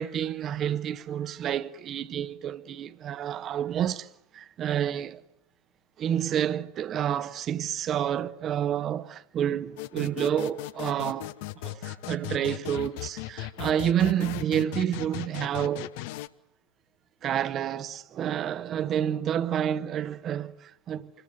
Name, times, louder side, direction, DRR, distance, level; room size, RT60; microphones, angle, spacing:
voice 1, 0.0-5.2 6.0-11.3 11.6-15.9 17.2-21.1, right 10 dB, 30° right, 1.2 m, -29 dB
sound 1, 9.8-16.3, left 16 dB, 50° left, 1.0 m, -37 dB
27.0 x 21.5 x 9.5 m
figure-of-eight pair, 90°, 0 cm